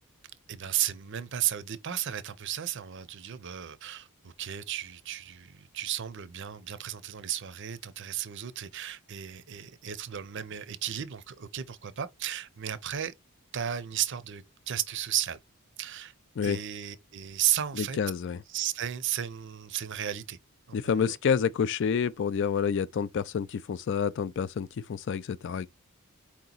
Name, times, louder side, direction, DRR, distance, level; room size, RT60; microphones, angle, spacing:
voice 1, 0.5-13.1 13.5-15.4 15.8-16.1 16.4-18.0 18.5-20.4 20.7-21.2, right 11 dB, 55° right, 0.5 m, -34 dB
voice 2, 17.8-18.4 20.7-25.7, left 6 dB, 55° left, 0.3 m, -28 dB
4.6 x 2.9 x 3.8 m
head